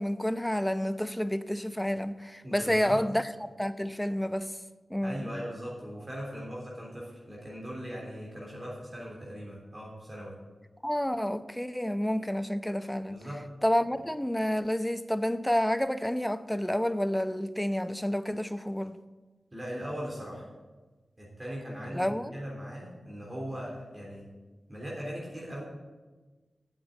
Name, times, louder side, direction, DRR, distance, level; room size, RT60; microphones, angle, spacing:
voice 1, 0.0-4.5 4.9-5.3 10.8-13.2 13.6-19.0 21.9-22.3, equal, 5° left, 0.7 m, -29 dB
voice 2, 2.4-3.0 5.0-10.3 13.1-13.4 19.5-20.5 21.2-24.2 24.7-25.6, equal, 30° right, 3.5 m, -39 dB
8.9 x 7.4 x 7.9 m
cardioid pair, 55°, 0 cm